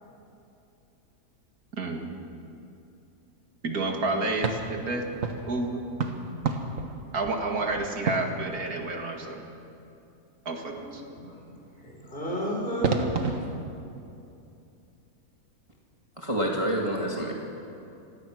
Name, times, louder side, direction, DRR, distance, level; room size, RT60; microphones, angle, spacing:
voice 1, 1.8-2.1 3.6-5.2 5.5-5.9 7.1-9.4 10.5-11.0, right 2 dB, 75° right, 2 dB, 2.4 m, -30 dB
sound 1, 4.4-9.1 12.2-12.3 12.8-13.6, right 4 dB, 60° right, 1.7 m, -32 dB
voice 2, 10.7-13.1, equal, 35° left, -1 dB, 4.9 m, -33 dB
voice 3, 16.2-17.3, right 1 dB, 20° right, -1 dB, 2.0 m, -27 dB
27.0 x 17.0 x 6.2 m, 2.7 s
omnidirectional pair, 1.6 m